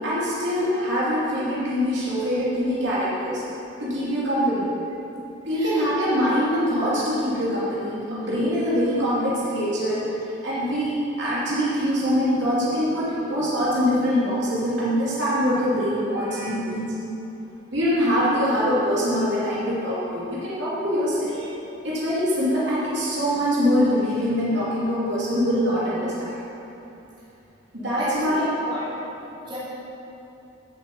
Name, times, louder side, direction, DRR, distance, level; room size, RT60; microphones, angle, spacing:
voice 1, 0.0-3.4 3.8-4.7 5.4-10.0 10.4-16.9 17.7-21.5 21.8-26.4 27.7-28.5, equal, 60° right, -8 dB, 2.8 m, -23 dB
voice 2, 28.0-28.8 29.5-29.6, equal, 25° right, -10 dB, 3.0 m, -33 dB
16.5 x 7.5 x 4.3 m, 2.9 s
head